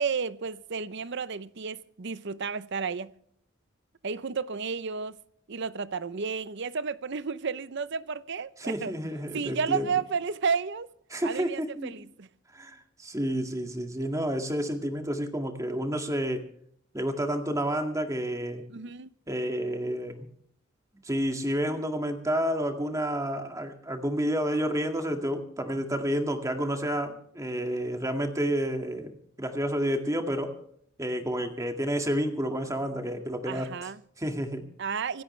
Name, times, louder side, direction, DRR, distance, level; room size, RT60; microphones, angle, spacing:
voice 1, 0.0-3.1 4.0-5.2 5.5-8.9 9.3-10.9 11.2-12.3 18.7-19.1 33.5-34.0 34.8-35.2, right 5 dB, 60° right, 0.7 m, -32 dB
voice 2, 8.6-9.9 11.1-11.9 12.5-16.5 16.9-18.7 19.3-20.3 21.0-29.1 29.4-30.6 31.0-33.9 34.2-34.7, equal, 15° right, 2.0 m, -30 dB
26.0 x 13.0 x 3.3 m
head